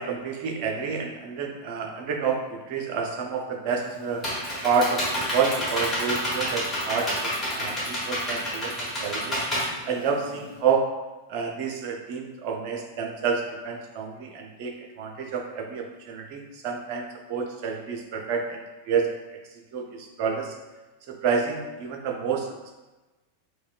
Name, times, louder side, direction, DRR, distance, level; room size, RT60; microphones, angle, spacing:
voice 1, 0.0-4.3 4.6-9.4 9.8-10.9 11.3-19.1 19.7-20.5 21.1-22.5, right 5 dB, 45° right, 2 dB, 0.5 m, -29 dB
Computer keyboard, 3.7-10.6, equal, 15° left, 1.3 m, -29 dB
4.7 x 2.2 x 2.4 m, 1.1 s
figure-of-eight pair, 90°, 0 cm